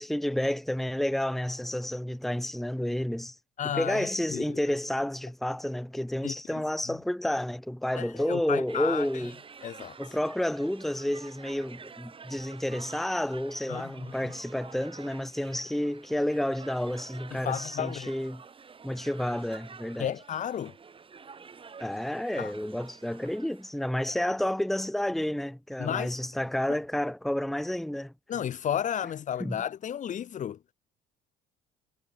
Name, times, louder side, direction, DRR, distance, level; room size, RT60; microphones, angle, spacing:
voice 1, 0.0-3.3 3.6-9.4 10.0-18.4 18.8-20.1 21.8-28.1 29.4-29.6, left 1 dB, ahead, 1.1 m, -30 dB
voice 2, 3.6-4.4 6.2-6.3 7.9-9.1 9.6-9.9 13.7-14.1 17.3-18.1 20.0-20.7 22.4-22.5 25.8-26.1 28.3-30.6, left 9 dB, 45° left, 1.3 m, -32 dB
sound 1, 8.7-23.9, right 5 dB, 30° right, 6.3 m, -49 dB
cardioid pair, 110°, 17 cm